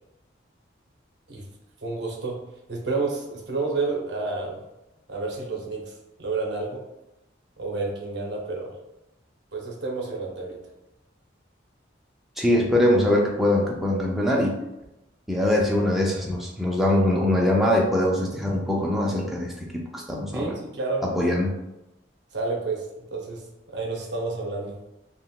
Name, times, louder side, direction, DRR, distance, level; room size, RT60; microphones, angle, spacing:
voice 1, 1.8-2.4 2.7-4.6 5.1-5.9 6.2-6.8 7.6-8.7 9.5-10.6 20.3-21.1 22.3-22.8 23.1-24.8, right 3 dB, 65° right, -1 dB, 0.6 m, -30 dB
voice 2, 12.4-14.6 15.3-20.5 21.1-21.5, left 1 dB, ahead, -3 dB, 0.4 m, -22 dB
3.6 x 2.1 x 2.2 m, 0.91 s
head